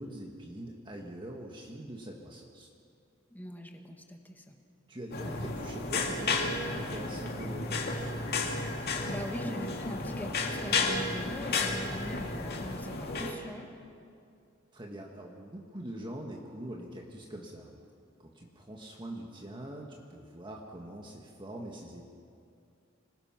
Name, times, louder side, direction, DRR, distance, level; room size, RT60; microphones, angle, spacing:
voice 1, 0.0-2.7 4.9-8.2 14.7-17.8 18.2-22.1, right 1 dB, 25° right, -1 dB, 1.6 m, -43 dB
voice 2, 3.3-4.6 8.8-13.7, left 1 dB, 10° left, 3 dB, 1.8 m, -42 dB
sound 1, 5.1-13.3, left 3 dB, 55° left, 2.4 m, -33 dB
27.0 x 20.0 x 6.0 m, 2.5 s
head